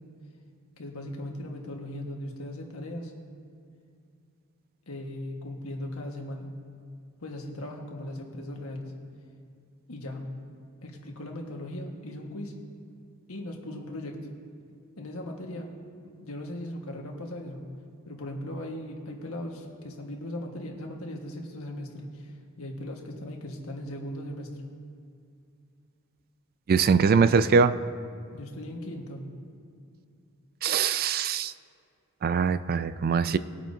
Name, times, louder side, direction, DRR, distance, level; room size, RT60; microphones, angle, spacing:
voice 1, 0.8-3.1 4.9-6.5 7.2-8.9 9.9-10.3 10.8-12.5 13.3-14.2 15.0-15.6 16.2-17.6 18.0-24.5 28.3-29.2, left 1 dB, 70° left, 1 dB, 1.6 m, -38 dB
voice 2, 26.7-27.8 30.6-31.5 32.2-33.4, right 5 dB, 45° right, 14 dB, 0.3 m, -22 dB
20.5 x 8.8 x 2.8 m, 2.3 s
head